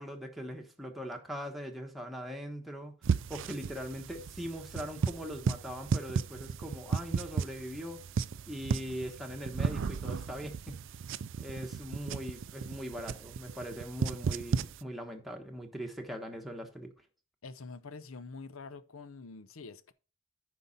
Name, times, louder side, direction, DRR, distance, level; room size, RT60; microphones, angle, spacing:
voice 1, 0.0-8.0 8.5-10.8 11.4-16.9, equal, ahead, 1.2 m, -41 dB
sound 1, 3.0-14.8, right 5 dB, 60° right, 0.4 m, -35 dB
voice 2, 17.4-19.9, left 4 dB, 75° left, 0.7 m, -46 dB
9.4 x 5.5 x 4.1 m
head